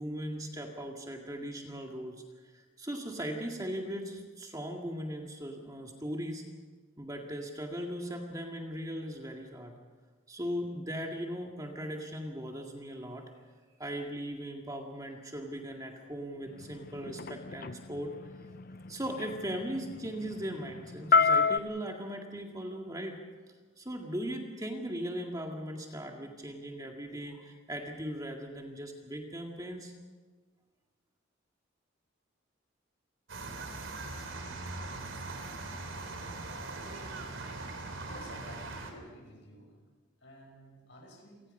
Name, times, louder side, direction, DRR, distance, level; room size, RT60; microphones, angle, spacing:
voice 1, 0.0-2.2 2.5-6.4 7.0-9.7 10.3-13.3 13.8-18.2 18.9-23.2 23.8-29.9, equal, 15° right, 1 dB, 2.0 m, -38 dB
sound 1, 16.6-21.6, left 5 dB, 45° left, 0.6 m, -29 dB
sound 2, 33.3-38.9, right 3 dB, 75° right, 3.3 m, -41 dB
voice 2, 38.0-39.7 40.2-41.4, equal, 60° left, 2 dB, 6.3 m, -51 dB
28.5 x 19.0 x 5.5 m, 1.4 s
head